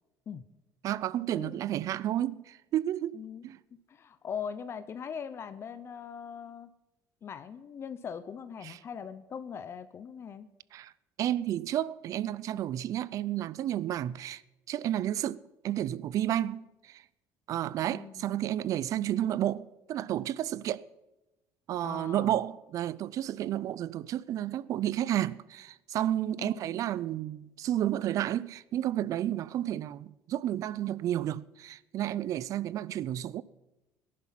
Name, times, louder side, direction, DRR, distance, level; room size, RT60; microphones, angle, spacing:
voice 1, 0.8-3.6 8.6-8.8 10.7-10.9 11.2-14.4 14.7-17.0 17.5-20.8 21.7-33.4, right 12 dB, 55° right, 0.5 m, -31 dB
voice 2, 1.3-1.7 3.1-3.4 3.9-6.7 7.2-10.5 17.9-18.4 21.8-22.4 26.4-26.8, left 7 dB, 40° left, 0.8 m, -41 dB
18.0 x 11.0 x 5.8 m
cardioid pair, 115°, 7 cm